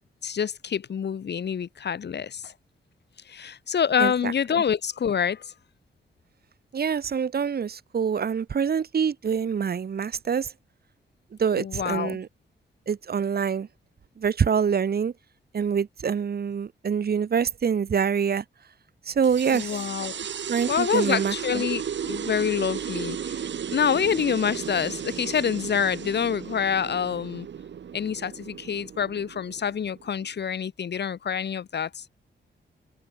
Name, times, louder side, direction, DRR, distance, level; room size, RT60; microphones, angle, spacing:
voice 1, 0.2-2.5 3.3-5.5 11.6-12.2 19.5-20.3 20.7-23.4 23.7-27.5 27.9-32.0, left 7 dB, 60° left, 3.9 m, -27 dB
voice 2, 4.0-4.3 6.7-10.5 11.4-12.3 12.9-13.7 14.2-15.1 15.5-18.4 19.1-19.8 20.5-21.6, right 7 dB, 55° right, 3.3 m, -25 dB
sound 1, 19.2-30.3, right 8 dB, 70° right, 7.5 m, -35 dB
open air
wide cardioid pair, 145°, 19 cm